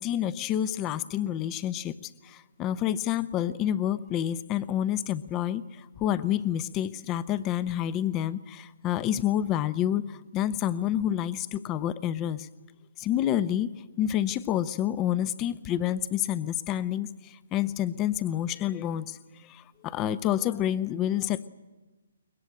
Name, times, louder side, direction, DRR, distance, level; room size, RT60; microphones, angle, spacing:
voice 1, 0.0-1.9 2.2-12.5 13.0-13.7 14.0-17.1 17.5-19.2 19.5-21.5, left 11 dB, 20° left, 16 dB, 0.8 m, -28 dB
22.0 x 21.0 x 8.7 m, 1.2 s
figure-of-eight pair, 135°, 0 cm